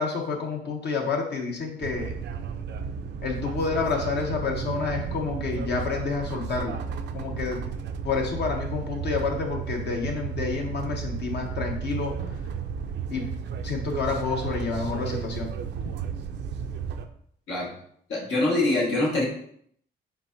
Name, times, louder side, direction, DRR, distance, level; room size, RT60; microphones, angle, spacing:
voice 1, 0.0-2.1 3.2-6.8 7.1-7.6 8.0-12.1 13.1-13.3 13.6-15.5, left 4 dB, 60° left, 1 dB, 0.9 m, -29 dB
sound 1, 1.8-17.1, right 6 dB, 60° right, 0.4 m, -33 dB
voice 2, 18.1-19.2, left 2 dB, 80° left, -3 dB, 1.5 m, -24 dB
4.5 x 3.5 x 2.6 m, 0.65 s
cardioid pair, 90°, 20 cm